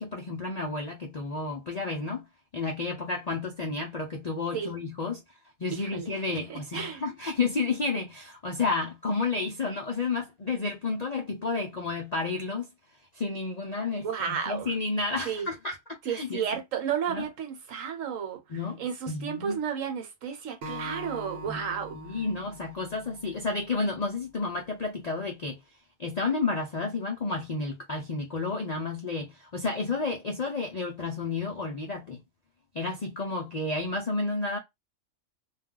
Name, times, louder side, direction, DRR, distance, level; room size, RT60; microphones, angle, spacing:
voice 1, 0.0-2.3 2.5-5.2 5.6-12.7 13.1-16.5 17.1-17.3 18.5-18.8 19.1-19.6 21.4-21.6 21.9-25.6 26.0-32.2 32.7-34.6, left 3 dB, 55° left, 0.4 m, -31 dB
voice 2, 5.7-7.0 14.0-14.7 15.2-15.5 16.0-18.4 18.8-22.0, right 7 dB, 70° right, 1.1 m, -33 dB
Acoustic guitar, 20.6-23.9, equal, 50° right, 0.9 m, -42 dB
2.3 x 2.3 x 3.6 m
omnidirectional pair, 1.4 m